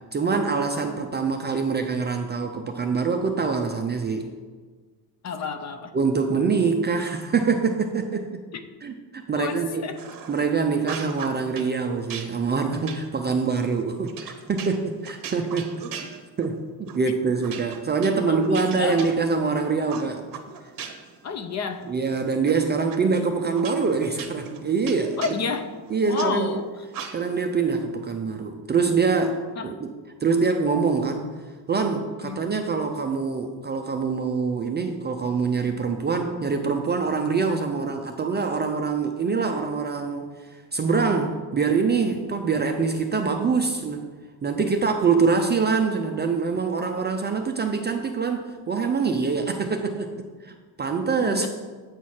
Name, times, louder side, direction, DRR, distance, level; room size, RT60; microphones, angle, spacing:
voice 1, 0.1-4.3 5.9-8.4 8.8-9.8 10.3-15.7 16.4-20.2 21.9-25.2 25.9-26.6 27.1-29.9 30.2-31.3 31.7-40.3 40.5-44.0 44.4-50.1 50.4-51.5, right 5 dB, 25° right, 4 dB, 0.4 m, -24 dB
voice 2, 0.8-1.1 5.2-5.9 8.5-8.6 9.3-10.0 18.3-19.1 21.2-21.9 25.2-25.7 26.1-26.8 29.6-29.7 32.2-32.4 51.2-51.5, left 5 dB, 40° left, 8 dB, 0.5 m, -31 dB
sound 1, 10.0-10.5 10.8-11.7 12.1-16.6 16.9-17.1 17.4-19.5 19.9-21.2 21.5-22.5 22.9-23.0 23.6-26.3 26.9-27.5, right 7 dB, 45° right, 0.8 m, -39 dB
8.1 x 4.7 x 4.3 m, 1.4 s
cardioid pair, 125°, 45 cm